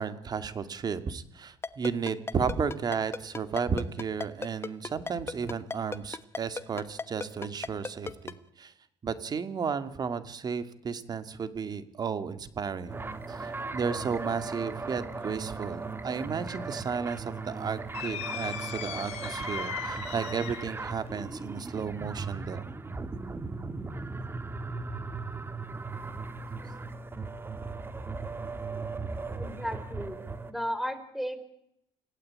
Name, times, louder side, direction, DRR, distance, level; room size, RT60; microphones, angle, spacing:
voice 1, 0.0-8.7 9.0-13.0 13.3-22.7, right 6 dB, 35° right, 11 dB, 2.3 m, -33 dB
Ringtone, 1.6-8.3, left 4 dB, 20° left, 1.2 m, -34 dB
sound 1, 12.9-30.5, right 3 dB, 20° right, 1.9 m, -37 dB
sound 2, 17.9-20.8, left 12 dB, 70° left, 3.1 m, -38 dB
voice 2, 29.3-30.2 30.5-31.4, equal, ahead, 11 dB, 3.9 m, -34 dB
29.0 x 18.5 x 8.9 m, 0.77 s
cardioid pair, 115°, 11 cm